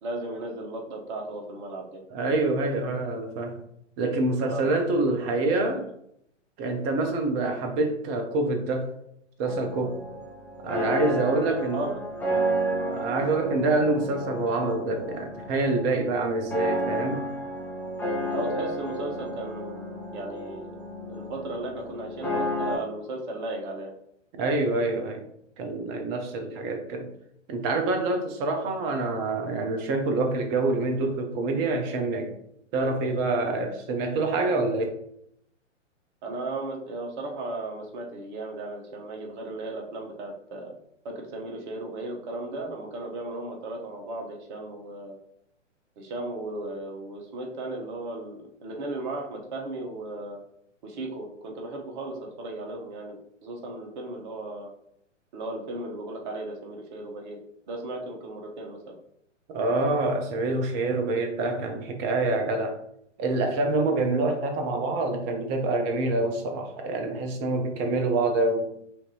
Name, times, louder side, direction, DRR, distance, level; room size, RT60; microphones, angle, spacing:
voice 1, 0.0-2.0 4.4-4.8 5.2-5.3 11.5-12.0 18.3-20.7 21.1-23.9 36.2-40.7 41.0-45.2 46.0-50.4 50.8-53.2 53.4-54.7 55.3-57.4 57.7-59.0, right 2 dB, 40° right, 1 dB, 1.2 m, -35 dB
voice 2, 2.1-3.6 4.0-5.8 6.6-8.9 9.4-10.0 10.6-11.8 12.8-17.3 24.3-25.2 25.6-27.1 27.5-32.3 32.7-34.8 59.5-62.8 63.2-68.7, right 2 dB, 20° right, 5 dB, 0.5 m, -26 dB
sound 1, 9.4-22.8, right 1 dB, 5° left, 1.1 m, -32 dB
5.7 x 2.7 x 3.0 m, 0.73 s
figure-of-eight pair, 120°, 37 cm